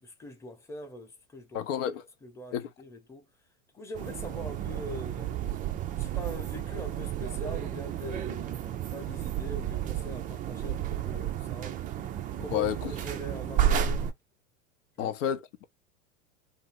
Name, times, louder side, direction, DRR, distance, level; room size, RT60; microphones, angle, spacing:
voice 1, 0.0-1.6 2.2-3.3 3.7-5.6 6.0-11.8 12.4-14.1 15.0-15.1, left 1 dB, 5° left, 0.8 m, -43 dB
voice 2, 1.5-2.1 2.5-2.7 12.4-13.0 15.0-15.6, left 10 dB, 65° left, 0.8 m, -31 dB
sound 1, 3.9-14.1, right 10 dB, 20° right, 0.4 m, -32 dB
2.7 x 2.6 x 3.0 m
hypercardioid pair, 100°, 41 cm